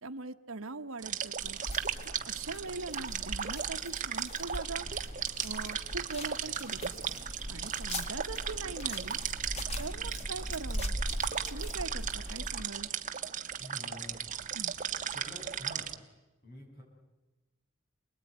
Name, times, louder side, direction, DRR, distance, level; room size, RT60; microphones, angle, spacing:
voice 1, 0.0-1.6 2.0-4.9 5.4-7.2 7.5-9.2 9.8-11.0 11.5-12.9 14.5-14.7, right 3 dB, 80° right, 8 dB, 1.2 m, -41 dB
sound 1, 1.0-15.9, right 8 dB, 40° right, 1.3 m, -36 dB
sound 2, 1.4-12.7, left 1 dB, 30° left, 1.9 m, -40 dB
voice 2, 13.6-14.2 15.1-15.9 16.4-16.8, equal, 50° left, 1 dB, 7.6 m, -47 dB
28.0 x 20.0 x 9.4 m, 1.1 s
head